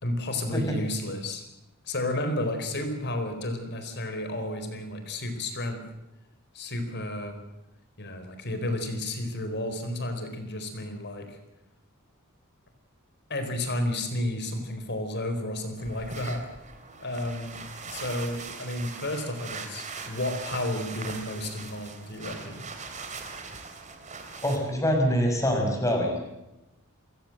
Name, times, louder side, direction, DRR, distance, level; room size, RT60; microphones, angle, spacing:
voice 1, 0.0-1.4 1.8-5.8 6.5-7.4 8.0-11.4 13.3-16.4 17.0-22.6, left 1 dB, 55° left, 7 dB, 4.4 m, -32 dB
sound 1, 15.8-24.6, right 4 dB, 35° right, 3.1 m, -41 dB
voice 2, 24.4-26.2, equal, 15° left, 2 dB, 6.4 m, -25 dB
29.0 x 16.0 x 7.8 m, 0.95 s
head